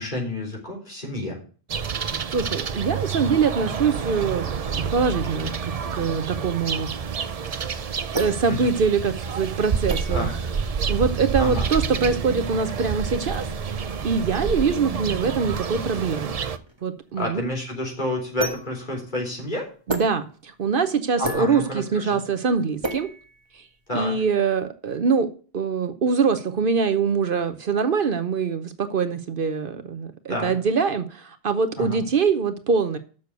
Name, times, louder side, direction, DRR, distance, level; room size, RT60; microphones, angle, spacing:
voice 1, 0.0-1.4 8.4-8.8 10.1-10.3 11.4-11.7 17.2-19.7 21.2-22.2 23.9-24.1 30.3-30.5 31.8-32.0, left 1 dB, 50° left, 3.9 m, -29 dB
sound 1, 1.7-16.6, right 6 dB, 45° right, 0.6 m, -28 dB
voice 2, 2.3-4.5 4.7-6.9 7.5-7.6 8.1-10.4 10.9-13.5 14.0-16.4 16.8-17.4 19.9-23.1 23.5-23.6 23.9-25.3 25.5-33.0, right 5 dB, 60° right, 1.0 m, -24 dB
sound 2, 8.1-23.9, right 2 dB, 25° right, 1.4 m, -37 dB
6.8 x 6.8 x 7.9 m
omnidirectional pair, 1.0 m